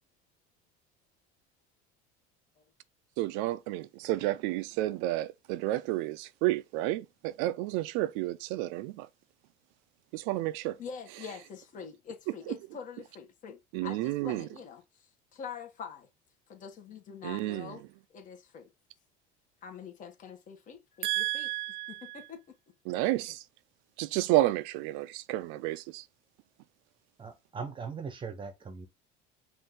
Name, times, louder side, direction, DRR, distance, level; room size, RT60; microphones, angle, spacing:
voice 1, 3.2-9.1 10.1-10.8 12.5-12.6 13.7-14.5 17.2-17.7 21.0-22.2 22.9-23.4 24.0-26.1, right 16 dB, 75° right, 0.5 m, -31 dB
voice 2, 10.8-16.1 16.5-17.8 18.1-18.7 19.6-21.5 21.9-22.6, left 6 dB, 40° left, 1.4 m, -45 dB
voice 3, 27.2-28.9, right 5 dB, 25° right, 0.8 m, -40 dB
5.3 x 2.6 x 3.6 m
cardioid pair, 135°, 20 cm